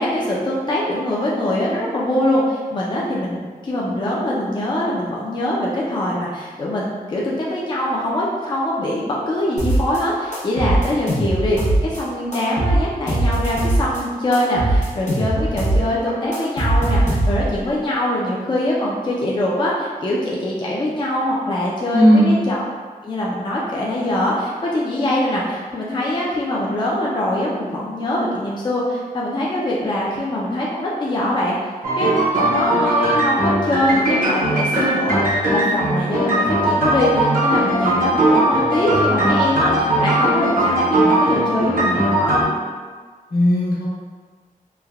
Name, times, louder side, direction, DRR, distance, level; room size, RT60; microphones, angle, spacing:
voice 1, 0.0-22.6 23.0-31.5 32.0-42.4, left 1 dB, 30° left, -4 dB, 0.4 m, -23 dB
sound 1, 9.6-10.0 10.3-12.0 12.3-14.0 14.3-17.6, right 1 dB, 50° left, 0.8 m, -20 dB
voice 2, 21.9-22.4 43.3-43.9, equal, 80° left, -10 dB, 1.1 m, -15 dB
sound 2, 31.8-42.4, right 1 dB, 65° right, 0.7 m, -19 dB
3.2 x 2.1 x 2.3 m, 1.5 s
wide cardioid pair, 100°, 15 cm